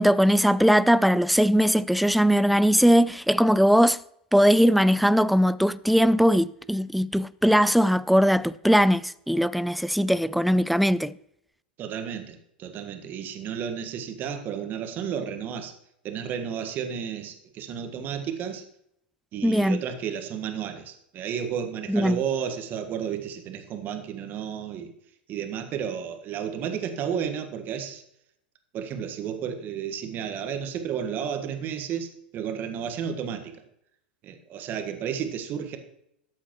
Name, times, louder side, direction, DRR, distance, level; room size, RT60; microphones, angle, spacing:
voice 1, 0.0-4.0 4.3-11.1 19.4-19.8 21.9-22.2, equal, ahead, 0.3 m, -20 dB
voice 2, 11.8-15.7 16.0-18.6 19.3-24.9 25.3-28.0 28.7-33.5 34.2-35.8, right 8 dB, 40° right, 1.5 m, -32 dB
12.5 x 8.4 x 3.1 m
hypercardioid pair, 95°, 5 cm